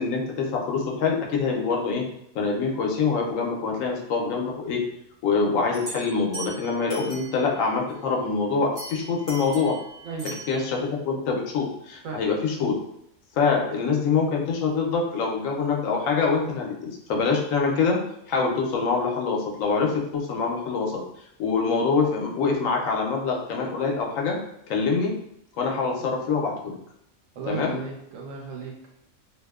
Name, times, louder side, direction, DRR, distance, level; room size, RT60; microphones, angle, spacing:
voice 1, 0.0-2.0 2.3-4.8 5.2-9.8 10.2-12.7 13.4-18.0 18.3-21.0 21.4-24.4 24.7-25.1 25.6-26.8 27.5-27.7, left 4 dB, 80° left, 0 dB, 1.0 m, -25 dB
sound 1, 5.7-7.6 8.8-10.8, right 2 dB, 5° right, 0.7 m, -40 dB
voice 2, 10.0-10.4 12.0-12.2 26.0-26.1 27.3-28.9, right 4 dB, 85° right, -1 dB, 1.0 m, -35 dB
2.7 x 2.0 x 2.2 m, 0.76 s
omnidirectional pair, 1.4 m